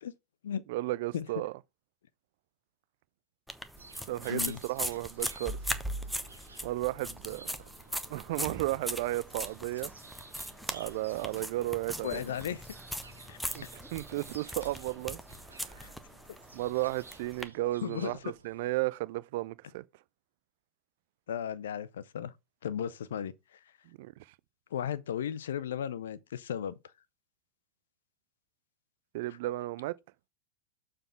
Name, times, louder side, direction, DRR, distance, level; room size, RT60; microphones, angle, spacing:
voice 1, 0.7-1.5 4.1-5.6 6.6-7.5 8.1-9.9 10.7-12.2 13.5-15.2 15.5-15.9 16.5-19.8 24.0-24.1 29.1-30.0, right 18 dB, 50° right, 0.4 m, -34 dB
sound 1, 3.5-17.4, equal, ahead, 0.8 m, -39 dB
sound 2, 3.8-18.8, right 3 dB, 75° right, 0.9 m, -55 dB
voice 2, 4.3-4.6 12.0-12.6 13.3-13.5 15.8-15.9 17.8-18.1 21.3-22.3 22.6-23.6 24.7-26.8, left 9 dB, 60° left, 0.7 m, -35 dB
7.0 x 3.8 x 5.6 m
figure-of-eight pair, 90°, 0 cm